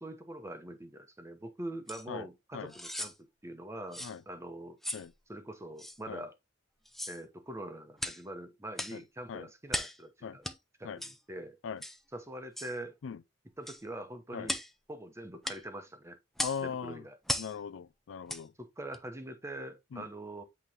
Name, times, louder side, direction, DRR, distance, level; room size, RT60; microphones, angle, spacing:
voice 1, 0.0-3.1 3.4-4.8 5.3-6.3 7.1-10.5 10.8-11.6 12.1-13.0 13.6-14.6 14.9-16.2 16.6-17.2 18.6-20.4, right 1 dB, 15° right, 1.0 m, -43 dB
sound 1, 1.9-2.0 2.7-3.1 3.9-4.2 4.8-5.1 5.8-6.0 6.8-7.2 8.0-8.2 8.7-9.0 9.7-10.0 10.4-10.6 11.0-11.2 11.8-12.0 12.6-12.7 13.7-13.8 14.4-14.7 15.4-15.6 16.4-16.6 17.3-17.5 18.3-18.4 18.9-19.0, left 1 dB, ahead, 0.5 m, -37 dB
voice 2, 16.4-17.0 17.4-18.5 19.9-20.0, left 7 dB, 85° left, 0.4 m, -39 dB
8.3 x 3.2 x 3.5 m
head